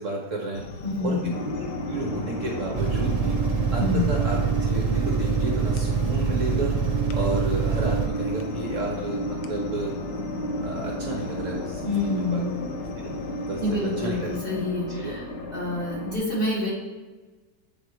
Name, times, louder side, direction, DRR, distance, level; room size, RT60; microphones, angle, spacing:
voice 1, 0.0-0.6 1.0-1.2 1.5-3.4 3.7-6.7 7.1-9.9 10.6-12.4 13.0-14.3 14.9-15.1, right 2 dB, 55° right, -1 dB, 1.3 m, -32 dB
sound 1, 0.5-14.5, left 5 dB, 70° left, 1.0 m, -40 dB
voice 2, 0.8-1.3 3.8-4.0 11.8-12.5 13.6-15.3 15.5-16.7, left 2 dB, 35° left, -7 dB, 2.7 m, -27 dB
sound 2, 1.3-16.2, equal, 90° left, 1.7 m, -32 dB
sound 3, 2.8-8.1, right 6 dB, 90° right, 1.2 m, -25 dB
8.2 x 3.6 x 4.6 m, 1.3 s
omnidirectional pair, 1.8 m